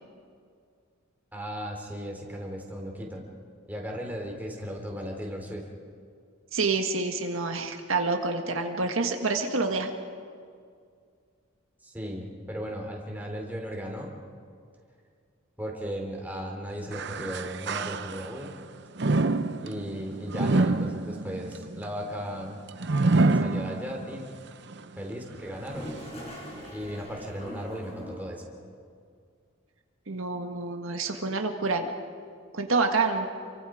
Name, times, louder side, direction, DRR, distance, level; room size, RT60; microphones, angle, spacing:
voice 1, 1.3-3.2 3.7-5.7 11.8-14.1 15.6-18.5 19.6-22.6 23.1-24.3 25.0-25.9 26.7-28.5, equal, 10° right, 0 dB, 3.2 m, -36 dB
voice 2, 6.5-9.9 30.1-31.9 32.5-33.3, right 3 dB, 75° right, 4 dB, 1.7 m, -27 dB
sound 1, 16.9-18.5 19.0-24.2 24.7-24.8 25.7-25.8, right 2 dB, 55° right, 0.7 m, -27 dB
Toilet flush, 25.4-28.5, equal, 30° left, 5.6 m, -42 dB
28.5 x 23.5 x 5.0 m, 2.2 s
head